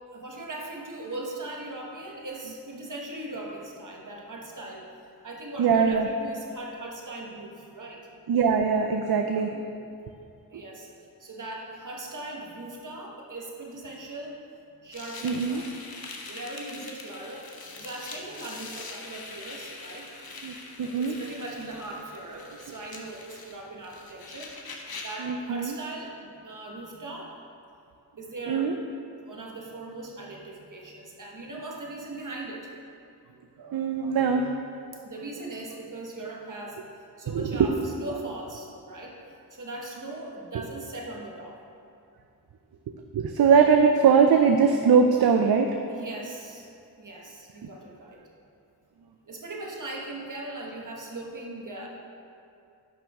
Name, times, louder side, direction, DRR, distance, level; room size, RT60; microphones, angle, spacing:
voice 1, 0.1-4.9 5.2-8.0 10.5-10.9 11.2-14.4 14.8-15.7 16.2-20.1 20.4-20.5 20.8-24.5 25.0-27.3 28.2-28.7 29.2-32.7 35.0-36.8 37.2-39.2 39.5-41.6 45.9-46.7 47.0-48.2 49.3-51.9, right 2 dB, 50° right, -1 dB, 1.4 m, -39 dB
voice 2, 5.6-6.1 8.3-9.6 10.5-10.6 15.2-15.6 20.4-21.2 25.2-25.7 28.5-28.7 33.6-34.6 37.3-37.9 43.1-45.8, right 6 dB, 65° right, 4 dB, 0.5 m, -22 dB
sound 1, 14.9-25.3, left 3 dB, 60° left, 1.0 m, -43 dB
10.5 x 5.8 x 3.6 m, 2.6 s
wide cardioid pair, 70°, 41 cm